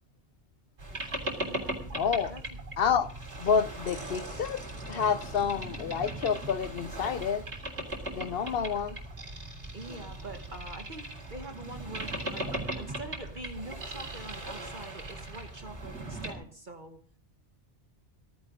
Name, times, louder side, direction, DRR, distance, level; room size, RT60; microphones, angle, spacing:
Boat Water vehicle, 0.8-16.3, right 1 dB, 80° right, 3.8 m, -38 dB
voice 1, 1.4-1.8 2.2-2.4 8.6-8.9 9.7-17.0, right 2 dB, 45° right, 1.4 m, -44 dB
voice 2, 1.9-2.3 2.8-3.1 3.4-7.4 8.1-9.0, left 6 dB, 60° left, 1.0 m, -29 dB
15.5 x 15.0 x 3.8 m
omnidirectional pair, 1.2 m